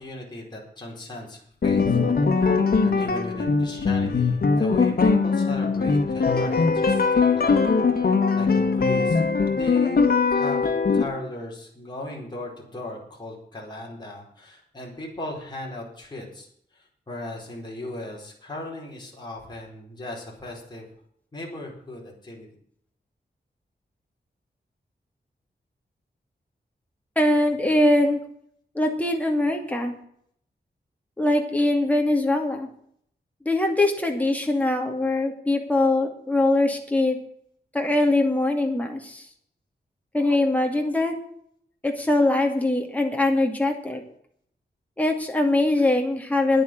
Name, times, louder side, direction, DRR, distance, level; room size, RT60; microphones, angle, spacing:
voice 1, 0.0-2.0 2.8-7.6 8.3-16.5 16.7-20.9 21.3-22.5, left 1 dB, 25° left, -3 dB, 4.7 m, -37 dB
sound 1, 1.6-11.0, left 4 dB, 60° left, 1.9 m, -21 dB
voice 2, 27.2-28.2 28.7-29.9 31.2-32.7 33.4-37.2 37.7-39.2 40.1-41.1 41.8-44.0 45.0-46.6, left 2 dB, 10° left, 2 dB, 2.5 m, -22 dB
10.5 x 9.0 x 8.9 m, 0.65 s
wide cardioid pair, 175°, 17 cm